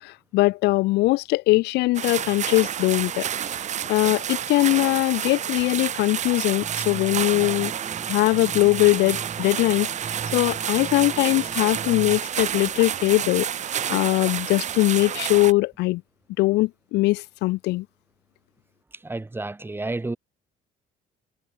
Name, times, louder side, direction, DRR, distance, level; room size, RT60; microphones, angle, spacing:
voice 1, 0.0-3.5 3.9-7.7 8.1-9.9 10.3-13.5 13.9-16.0 16.4-17.9, left 20 dB, 80° left, 0.5 m, -21 dB
sound 1, 1.9-15.5, right 9 dB, 45° right, 0.8 m, -29 dB
sound 2, 6.6-12.2, right 5 dB, 30° right, 1.5 m, -39 dB
voice 2, 18.9-20.2, right 2 dB, 15° right, 2.7 m, -31 dB
cardioid pair, 110°, 17 cm